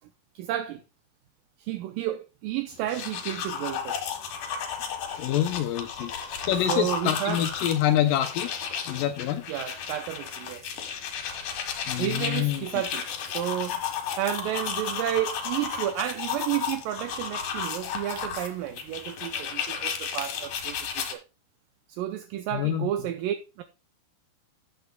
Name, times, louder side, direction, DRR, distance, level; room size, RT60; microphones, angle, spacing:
voice 1, 0.4-0.8 1.6-4.0 6.7-7.4 9.5-10.8 12.0-13.8 14.2-21.2 21.9-23.6, right 12 dB, 80° right, 2.0 m, -31 dB
sound 1, 2.7-21.1, left 7 dB, 60° left, 2.6 m, -33 dB
voice 2, 5.2-6.1 6.4-8.5 8.9-9.5 11.9-12.8 22.5-22.9, left 11 dB, 80° left, 2.1 m, -26 dB
12.5 x 8.3 x 2.2 m
omnidirectional pair, 4.5 m